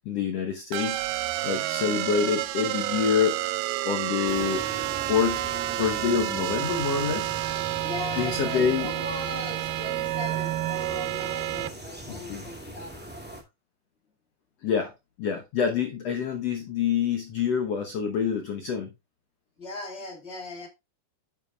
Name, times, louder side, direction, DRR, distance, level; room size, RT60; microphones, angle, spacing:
voice 1, 0.0-3.4 3.8-4.7 5.0-5.4 5.8-7.6 8.2-8.9 12.1-12.4 14.6-14.9 15.2-18.9, left 7 dB, 80° left, 1.4 m, -27 dB
sound 1, 0.7-11.7, right 16 dB, 80° right, 2.4 m, -30 dB
sound 2, 4.2-13.4, equal, 5° right, 0.8 m, -41 dB
voice 2, 7.8-13.0 19.6-20.7, left 3 dB, 25° left, 1.4 m, -39 dB
9.3 x 8.8 x 2.4 m
omnidirectional pair, 4.5 m